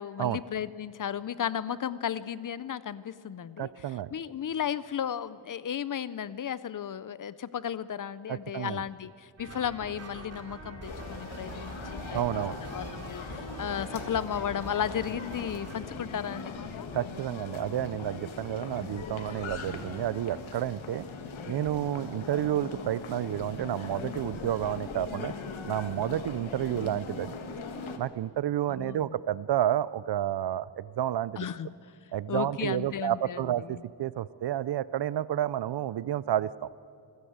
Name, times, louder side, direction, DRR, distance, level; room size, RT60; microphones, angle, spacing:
voice 1, 0.0-3.7 4.1-11.8 12.1-12.4 12.7-16.9 19.7-19.8 28.7-29.2 31.4-31.8 32.3-33.8, left 9 dB, 45° left, 17 dB, 0.5 m, -34 dB
voice 2, 3.6-4.1 8.3-8.8 12.1-12.6 16.9-21.1 21.5-25.3 25.6-27.4 28.0-31.4 32.1-36.7, right 11 dB, 60° right, 19 dB, 0.5 m, -30 dB
sound 1, 9.4-15.8, right 2 dB, 30° right, 2.8 m, -44 dB
sound 2, 10.9-28.0, left 4 dB, 85° left, 1.8 m, -40 dB
26.5 x 15.0 x 8.0 m, 2.4 s
wide cardioid pair, 175°, 46 cm